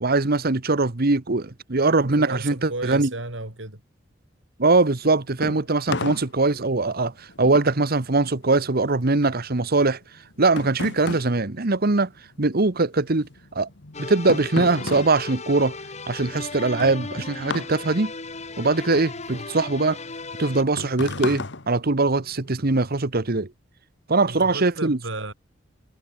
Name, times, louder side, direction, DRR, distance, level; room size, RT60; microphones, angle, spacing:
voice 1, 0.0-3.1 4.6-10.0 10.4-12.1 12.4-13.3 13.5-13.7 14.0-15.8 16.1-18.1 18.6-20.0 20.4-23.5 24.1-25.0, right 3 dB, 50° right, 1.3 m, -21 dB
voice 2, 2.2-3.8 19.3-19.5 24.2-25.3, right 2 dB, 70° right, 5.3 m, -34 dB
sound 1, 4.9-12.6 12.8-22.5, left 3 dB, 65° left, 1.7 m, -35 dB
sound 2, 13.9-20.6, left 3 dB, 35° left, 3.6 m, -36 dB
head